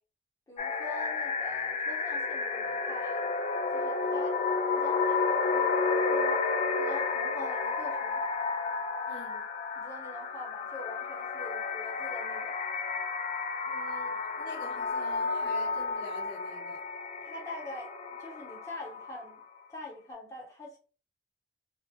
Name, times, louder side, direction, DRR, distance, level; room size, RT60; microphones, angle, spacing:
voice 1, 0.5-3.3 3.7-4.4 4.7-6.4 6.8-8.2 9.8-12.6 17.2-17.9 18.2-19.4 19.7-20.8, left 2 dB, 20° left, 1.0 m, -43 dB
sound 1, 0.6-19.4, left 4 dB, 40° left, 0.3 m, -31 dB
voice 2, 9.1-9.5 13.7-16.8, equal, 80° left, 0.9 m, -46 dB
2.8 x 2.4 x 2.2 m
head